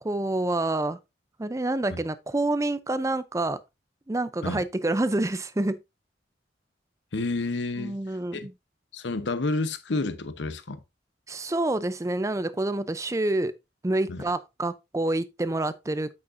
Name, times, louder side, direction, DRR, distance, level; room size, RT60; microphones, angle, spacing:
voice 1, 0.0-1.0 1.4-3.6 4.1-5.8 7.8-8.5 11.3-13.5 13.8-16.1, right 2 dB, 15° right, 0.5 m, -27 dB
voice 2, 7.1-8.0 8.3-8.5 8.9-10.8 14.1-14.2, left 3 dB, 80° left, 0.9 m, -30 dB
8.6 x 6.4 x 2.6 m
head